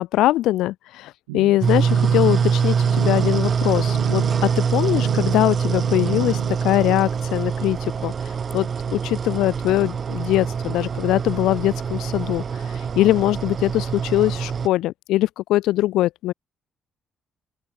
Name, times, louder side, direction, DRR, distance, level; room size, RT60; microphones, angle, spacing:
voice 1, 0.0-8.1 8.5-12.4 13.0-16.3, left 15 dB, 70° left, 6.9 m, -22 dB
sound 1, 1.3-6.6, right 24 dB, 80° right, 2.8 m, -33 dB
sound 2, 1.6-14.7, right 6 dB, 45° right, 5.8 m, -24 dB
open air
hypercardioid pair, 45°, 0 cm